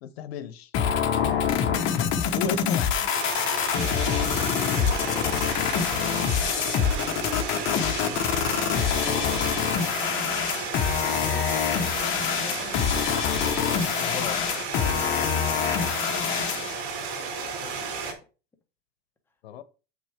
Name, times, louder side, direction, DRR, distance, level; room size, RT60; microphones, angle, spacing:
voice 1, 0.0-0.7 2.3-3.1 6.6-8.6 11.0-11.8 12.4-13.0 14.0-14.4 19.4-19.6, left 8 dB, 80° left, 1.0 m, -38 dB
sound 1, 0.7-16.7, left 8 dB, 40° left, 1.3 m, -25 dB
sound 2, 3.1-18.1, right 5 dB, 50° right, 3.7 m, -33 dB
voice 2, 9.0-9.6 12.4-12.7 16.8-18.2, left 2 dB, 5° left, 1.2 m, -46 dB
7.6 x 6.2 x 3.6 m
supercardioid pair, 145°, 31 cm